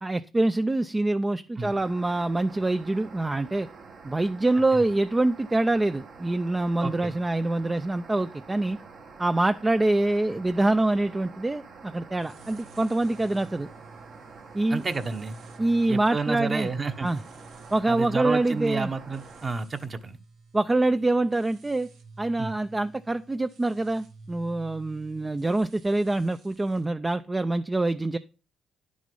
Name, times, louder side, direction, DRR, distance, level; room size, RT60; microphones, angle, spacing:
voice 1, 0.0-3.7 4.0-8.8 9.2-13.7 14.5-14.8 15.6-16.7 17.0-17.2 17.7-18.9 20.5-21.9 22.2-28.2, right 2 dB, 20° right, 10 dB, 0.4 m, -25 dB
sound 1, 1.6-19.5, right 4 dB, 65° right, 1.8 m, -47 dB
voice 2, 6.8-7.1 14.7-15.4 15.9-17.1 17.9-20.2 22.4-22.6, right 4 dB, 35° right, 8 dB, 1.1 m, -30 dB
sound 2, 12.1-26.8, right 3 dB, 90° right, 2.1 m, -52 dB
10.5 x 6.3 x 5.4 m, 0.34 s
cardioid pair, 90°, 0 cm